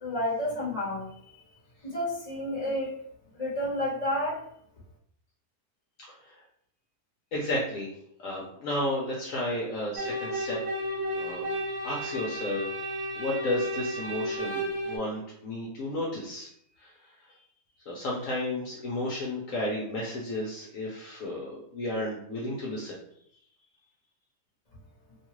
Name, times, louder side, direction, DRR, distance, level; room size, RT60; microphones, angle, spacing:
voice 1, 0.0-1.1 1.8-3.0 3.3-4.4, left 1 dB, 30° left, -6 dB, 1.0 m, -30 dB
voice 2, 6.1-6.4 7.3-7.9 8.2-10.6 11.1-11.5 11.8-12.7 13.1-16.5 16.8-16.9 17.9-23.0, left 1 dB, 65° left, -3 dB, 1.0 m, -33 dB
sound 1, 10.0-15.0, equal, 85° right, 1.3 m, -32 dB
2.8 x 2.3 x 3.0 m, 0.67 s
omnidirectional pair, 1.6 m